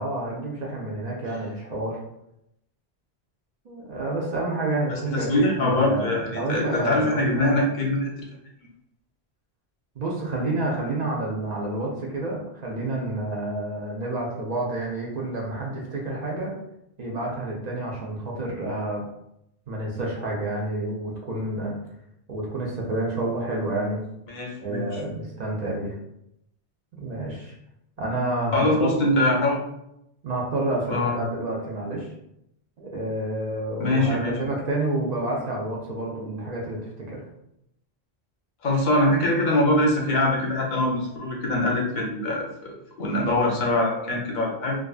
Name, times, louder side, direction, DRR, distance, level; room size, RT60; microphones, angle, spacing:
voice 1, 0.0-2.0 3.6-7.7 10.0-16.5 17.0-19.0 19.7-21.7 22.3-24.0 24.6-25.9 27.0-27.5 28.0-28.9 30.2-32.1 32.8-37.2, right 2 dB, 50° right, -3 dB, 0.5 m, -29 dB
voice 2, 4.9-8.1 24.3-25.0 28.5-29.6 30.9-31.1 33.8-34.3 38.6-44.8, left 1 dB, 50° left, -2 dB, 0.7 m, -23 dB
2.4 x 2.3 x 2.3 m, 0.80 s
omnidirectional pair, 1.1 m